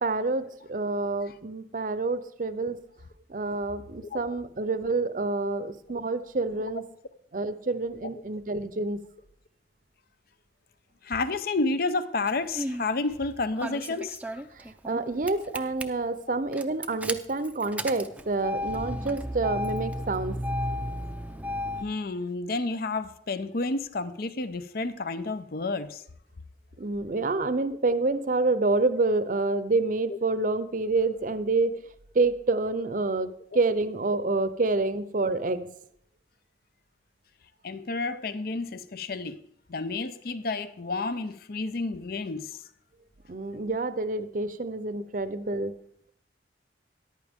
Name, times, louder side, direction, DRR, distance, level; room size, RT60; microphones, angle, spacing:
voice 1, 0.0-2.8 3.3-6.8 7.3-9.0 14.8-20.3 26.8-31.7 32.1-35.7 43.3-45.7, right 3 dB, 45° right, 0.6 m, -28 dB
voice 2, 11.0-14.4 21.8-26.0 30.1-30.2 37.6-39.4 39.7-42.6, left 3 dB, 55° left, 0.7 m, -30 dB
Engine starting, 12.3-12.9 13.6-15.0 15.3-15.8 16.5-21.8, equal, 10° right, 0.5 m, -33 dB
13.5 x 11.0 x 3.6 m
head